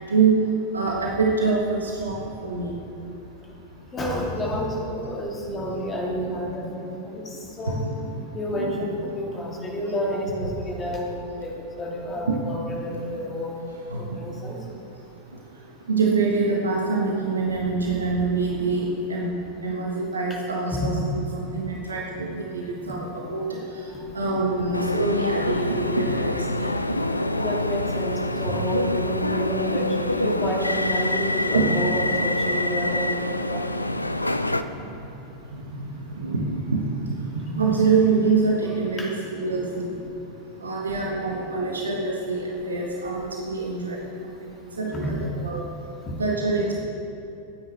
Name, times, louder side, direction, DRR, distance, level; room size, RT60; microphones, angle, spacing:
voice 1, 0.7-2.7 5.5-5.6 6.2-6.4 7.6-7.7 8.5-8.8 12.3-12.4 13.9-14.0 15.9-19.3 19.6-23.6 24.1-26.7 31.5-31.6 36.1-39.9 40.6-44.0 44.2-45.6 46.2-46.8, right 4 dB, 75° right, -2 dB, 1.6 m, -25 dB
voice 2, 3.9-7.8 8.3-13.6 14.0-14.6 20.3-20.4 20.7-21.0 23.9-24.1 24.6-24.7 25.4-25.7 27.0-27.1 27.4-33.7 39.0-39.1 44.9-45.1 46.0-46.1, equal, 20° left, -2 dB, 2.8 m, -30 dB
sound 1, 24.7-34.6, left 1 dB, 85° left, 0.5 m, -26 dB
24.5 x 9.5 x 3.4 m, 2.7 s
figure-of-eight pair, 90°, 0 cm